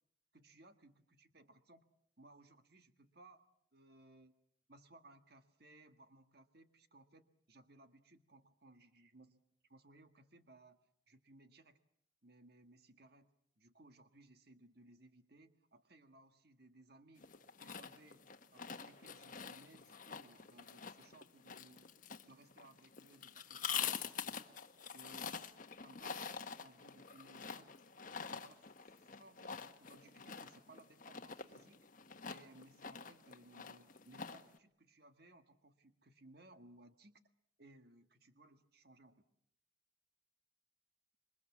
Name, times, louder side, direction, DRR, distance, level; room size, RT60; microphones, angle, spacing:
voice 1, 0.3-1.9 2.2-4.3 4.7-9.4 9.7-10.8 11.1-11.8 12.2-17.3 17.6-21.9 22.3-24.5 24.8-25.5 25.8-27.7 28.1-28.7 28.9-31.9 32.3-37.2 37.6-39.3, right 2 dB, 55° right, 8 dB, 1.7 m, -63 dB
sound 1, 17.2-34.6, left 7 dB, 40° left, 1.3 m, -46 dB
27.0 x 23.0 x 7.3 m, 0.71 s
head